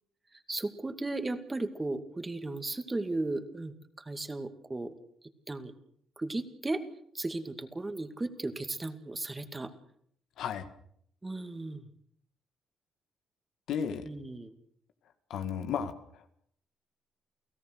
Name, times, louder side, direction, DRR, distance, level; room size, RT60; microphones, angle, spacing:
voice 1, 0.5-4.9 5.5-5.7 6.2-6.8 7.1-9.7 11.2-11.9 14.0-14.5, right 2 dB, 20° right, 8 dB, 2.4 m, -35 dB
voice 2, 13.7-14.1 15.3-15.9, left 7 dB, 80° left, 8 dB, 2.1 m, -33 dB
29.5 x 17.0 x 6.4 m, 0.67 s
cardioid pair, 90°, 0 cm